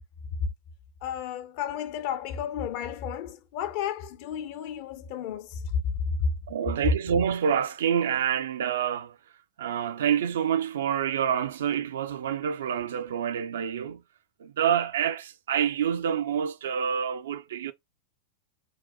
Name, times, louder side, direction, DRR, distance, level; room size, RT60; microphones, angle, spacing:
voice 1, 1.0-5.8 6.2-6.3, left 8 dB, 45° left, 0.5 m, -32 dB
voice 2, 6.5-9.2 9.6-14.0 14.4-17.7, right 8 dB, 60° right, 0.3 m, -27 dB
2.6 x 2.2 x 3.9 m
figure-of-eight pair, 90°, 0 cm